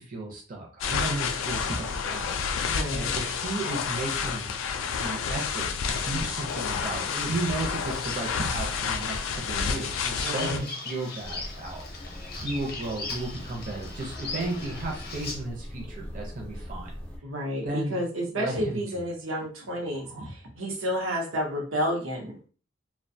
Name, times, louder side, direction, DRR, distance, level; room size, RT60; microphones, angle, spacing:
voice 1, 0.0-2.3 2.9-4.5 5.0-11.8 12.4-16.9 17.6-18.0 18.3-19.0, right 2 dB, 40° right, -1 dB, 0.5 m, -34 dB
sound 1, 0.8-10.6, left 6 dB, 80° left, 0.3 m, -30 dB
voice 2, 2.6-3.1 10.2-10.6 17.2-22.5, equal, 90° right, 0 dB, 0.7 m, -31 dB
Bird vocalization bird call bird song, 6.5-15.3, left 3 dB, 50° left, 0.6 m, -40 dB
sound 2, 11.2-17.2, equal, 5° left, 0.4 m, -41 dB
2.4 x 2.2 x 2.6 m, 0.39 s
head